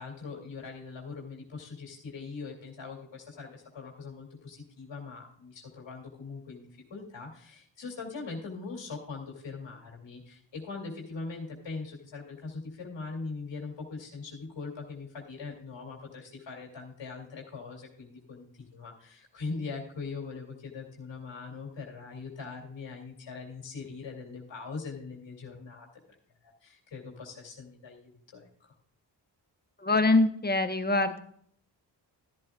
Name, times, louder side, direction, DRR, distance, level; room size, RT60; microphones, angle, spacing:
voice 1, 0.0-25.9 26.4-28.7, left 4 dB, 75° left, -1 dB, 2.7 m, -41 dB
voice 2, 29.8-31.2, left 2 dB, 20° left, 8 dB, 1.0 m, -24 dB
13.5 x 11.0 x 2.4 m, 0.63 s
cardioid pair, 60°, 44 cm